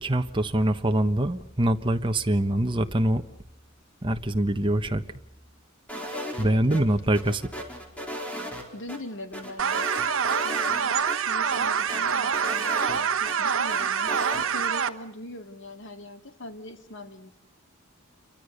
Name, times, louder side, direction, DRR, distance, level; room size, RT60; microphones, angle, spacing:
voice 1, 0.0-3.2 4.0-5.0 6.4-7.5, right 1 dB, 25° right, 6 dB, 1.2 m, -24 dB
sound 1, 5.9-6.8 7.1-9.0 9.3-10.8 11.1-11.2 11.5-13.3 13.7-14.5, equal, 5° left, 4.5 m, -36 dB
voice 2, 6.4-6.8 8.5-17.3, left 1 dB, 60° left, 7 dB, 2.2 m, -41 dB
sound 2, 9.6-14.9, right 7 dB, 65° right, 1.1 m, -26 dB
28.5 x 24.0 x 6.7 m, 0.77 s
head